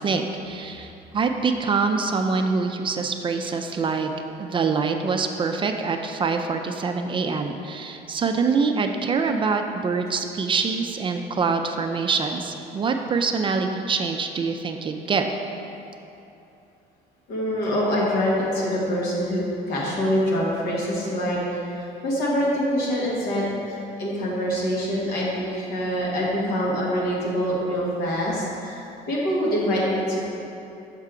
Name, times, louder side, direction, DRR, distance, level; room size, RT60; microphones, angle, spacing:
voice 1, 0.0-4.1 4.4-15.3, right 4 dB, 30° right, 5 dB, 0.4 m, -25 dB
voice 2, 17.3-30.2, equal, 80° left, -4 dB, 1.5 m, -25 dB
6.5 x 4.7 x 3.7 m, 2.8 s
cardioid pair, 110°, 17 cm